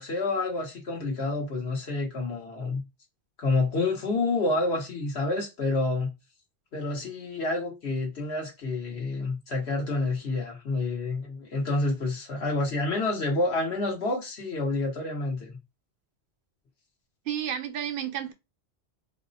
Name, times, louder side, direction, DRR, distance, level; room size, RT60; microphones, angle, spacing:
voice 1, 0.0-2.8 3.4-6.2 6.7-15.6, left 2 dB, 70° left, 1.3 m, -28 dB
voice 2, 17.3-18.3, right 9 dB, 60° right, 0.7 m, -31 dB
4.0 x 2.1 x 2.6 m
omnidirectional pair, 1.1 m